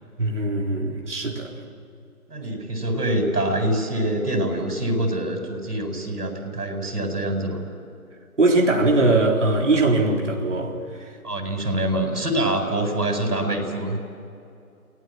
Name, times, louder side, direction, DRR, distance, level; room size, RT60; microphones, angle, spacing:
voice 1, 0.2-1.5 8.4-10.7, right 2 dB, 50° right, -1 dB, 4.0 m, -20 dB
voice 2, 2.3-7.7 11.2-14.0, right 1 dB, 80° right, 3 dB, 7.8 m, -25 dB
29.0 x 20.0 x 7.7 m, 2.6 s
figure-of-eight pair, 180°, 45 cm